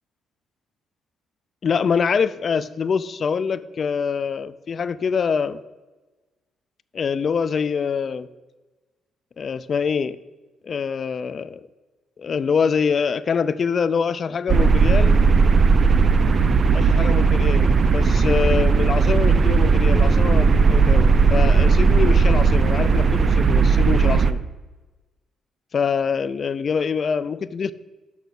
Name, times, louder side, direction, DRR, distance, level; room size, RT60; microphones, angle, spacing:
voice 1, 1.6-5.6 6.9-8.3 9.4-10.2 10.6-11.6 12.2-15.2 16.7-24.4 25.7-27.7, left 6 dB, 45° left, 16 dB, 0.4 m, -24 dB
sound 1, 14.5-24.3, right 5 dB, 45° right, 0.5 m, -16 dB
6.1 x 5.9 x 6.9 m, 1.2 s
cardioid pair, 90°, 0 cm